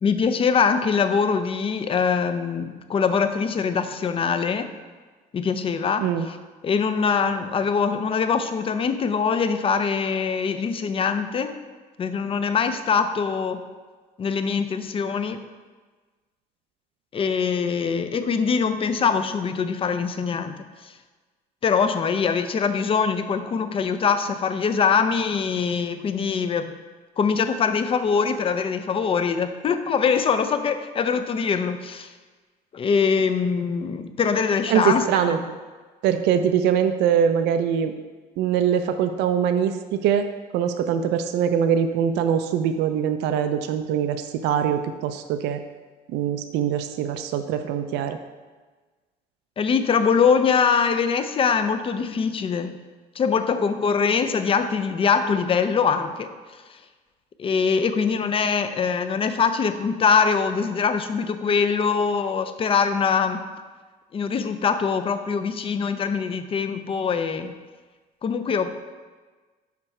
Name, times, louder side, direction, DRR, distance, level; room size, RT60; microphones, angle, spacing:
voice 1, 0.0-4.7 5.3-6.4 6.6-11.6 12.0-13.6 14.2-15.4 17.1-20.5 20.8-20.9 21.6-26.7 27.2-32.1 32.7-35.4 49.6-52.8 53.2-56.3 57.4-63.4 64.1-67.5 68.2-68.8, left 6 dB, 35° left, 10 dB, 0.5 m, -23 dB
voice 2, 34.7-35.4 36.0-37.9 38.4-40.3 40.5-45.6 46.1-48.2, right 8 dB, 85° right, 8 dB, 0.4 m, -23 dB
5.8 x 4.2 x 4.8 m, 1.4 s
cardioid pair, 110°, 17 cm